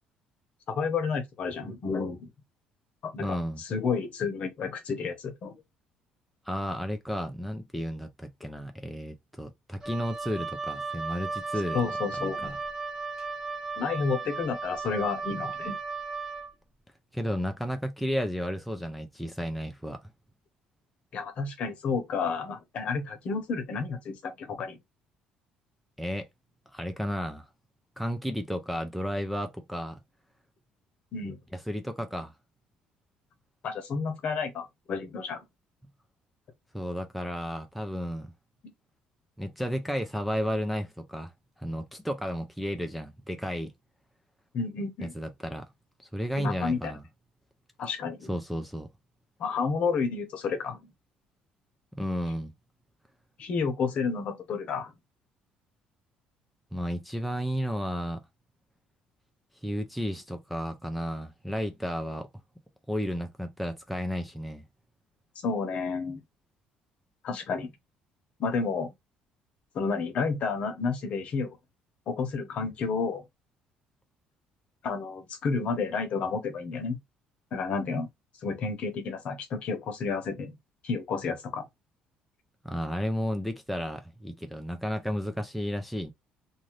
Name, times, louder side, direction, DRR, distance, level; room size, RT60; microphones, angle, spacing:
voice 1, 0.7-2.3 3.0-5.6 11.7-12.5 13.8-15.7 21.1-24.8 31.1-31.4 33.6-35.4 44.5-45.1 46.4-46.9 47.8-48.3 49.4-50.8 53.4-54.9 65.4-66.2 67.2-67.7 68.4-68.9 69.7-71.6 72.1-73.2 74.8-77.0 77.5-78.1 78.4-80.5 80.8-81.6, left 5 dB, 50° left, 0.9 m, -31 dB
voice 2, 3.2-3.6 6.5-12.6 17.1-20.0 26.0-26.3 26.7-27.5 28.0-30.0 31.5-32.3 36.7-38.3 39.4-41.3 41.6-43.7 45.1-45.7 46.0-47.0 48.3-48.9 51.9-52.5 56.7-58.2 59.6-62.3 62.9-64.6 82.6-86.1, equal, ahead, 0.4 m, -33 dB
Wind instrument woodwind instrument, 9.8-16.5, right 4 dB, 20° right, 0.8 m, -35 dB
2.6 x 2.5 x 3.1 m
cardioid pair, 120°, 3 cm